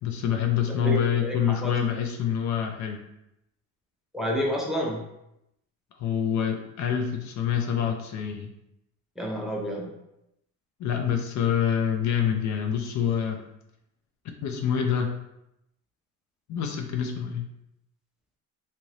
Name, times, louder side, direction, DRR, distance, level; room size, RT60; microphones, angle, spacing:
voice 1, 0.0-3.0 6.0-8.5 10.8-13.4 14.4-15.1 16.5-17.5, left 8 dB, 50° left, 4 dB, 0.5 m, -26 dB
voice 2, 0.8-1.7 4.1-5.0 9.2-9.9, equal, ahead, -1 dB, 0.5 m, -29 dB
2.8 x 2.5 x 3.1 m, 0.84 s
cardioid pair, 105°, 36 cm